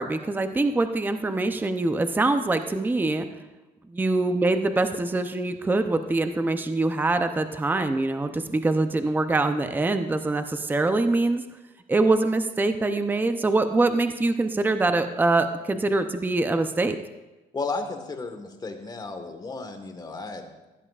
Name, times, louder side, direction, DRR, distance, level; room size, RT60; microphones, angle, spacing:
voice 1, 0.0-3.3 3.9-11.4 11.9-17.0, right 2 dB, 10° right, 8 dB, 0.6 m, -24 dB
voice 2, 17.5-20.5, left 3 dB, 25° left, 5 dB, 1.5 m, -33 dB
16.5 x 10.5 x 2.4 m, 1.1 s
cardioid pair, 110°, 17 cm